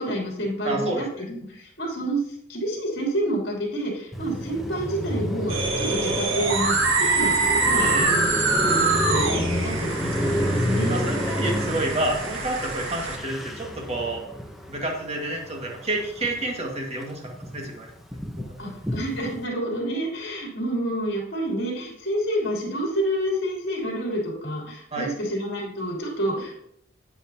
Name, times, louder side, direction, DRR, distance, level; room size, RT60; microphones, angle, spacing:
voice 1, 0.0-2.2 2.5-6.7 7.0-8.3 8.6-11.1 18.6-26.6, right 1 dB, 60° left, -1 dB, 2.9 m, -28 dB
voice 2, 0.6-1.2 7.8-8.2 10.9-14.3 14.7-17.9 18.4-18.7 24.9-25.1, right 1 dB, 35° right, 0 dB, 1.7 m, -29 dB
Car passing by, 4.1-16.6 16.9-19.4, equal, ahead, 0.8 m, -30 dB
sound 1, 5.5-13.2, right 3 dB, 85° right, 1.5 m, -25 dB
9.9 x 8.9 x 2.8 m, 0.71 s
head